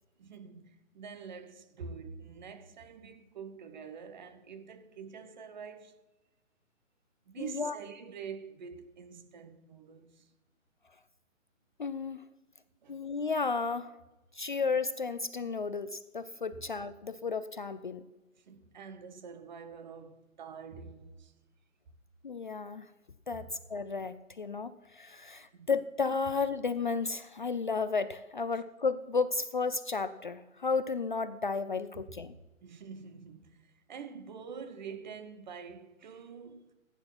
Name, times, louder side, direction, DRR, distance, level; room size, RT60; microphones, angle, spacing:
voice 1, 0.2-6.0 7.3-10.3 12.8-13.0 16.5-16.7 18.4-21.3 23.3-23.5 25.5-25.7 32.6-36.7, right 6 dB, 35° right, 1.1 m, -46 dB
voice 2, 7.4-7.7 11.8-12.2 12.9-13.9 14.3-18.0 22.2-22.9 23.3-32.3, left 4 dB, 40° left, 0.5 m, -33 dB
15.5 x 9.8 x 5.8 m
hypercardioid pair, 155°, 40 cm